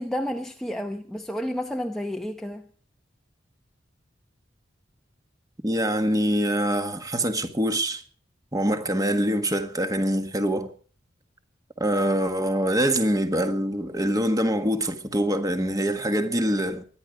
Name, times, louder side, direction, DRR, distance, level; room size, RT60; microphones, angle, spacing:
voice 1, 0.0-2.6, equal, 5° left, 0.8 m, -31 dB
voice 2, 5.6-8.0 8.5-10.7 11.8-16.8, right 1 dB, 20° right, 1.6 m, -24 dB
23.5 x 10.5 x 5.2 m
head